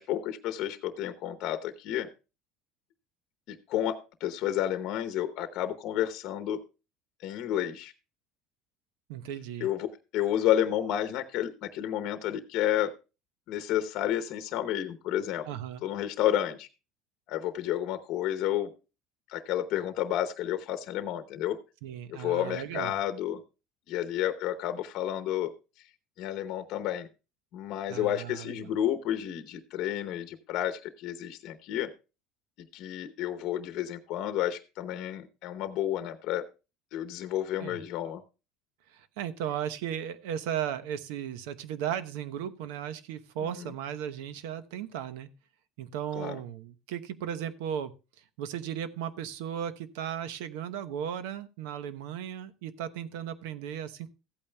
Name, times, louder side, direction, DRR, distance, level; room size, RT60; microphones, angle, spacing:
voice 1, 0.0-2.1 3.5-6.6 7.2-7.9 9.6-12.9 13.5-15.5 15.8-16.7 17.3-18.7 19.3-21.6 22.1-23.4 23.9-25.5 26.2-27.1 27.5-31.9 32.7-36.4 36.9-38.2 43.6-43.7 46.1-46.4, left 11 dB, 50° left, 10 dB, 0.9 m, -31 dB
voice 2, 9.1-9.7 15.5-15.8 21.8-22.9 27.9-28.7 37.6-37.8 38.9-45.3 45.8-47.9 48.4-54.1, right 9 dB, 85° right, 12 dB, 0.9 m, -36 dB
15.0 x 8.7 x 2.3 m, 0.29 s
cardioid pair, 160°, 0 cm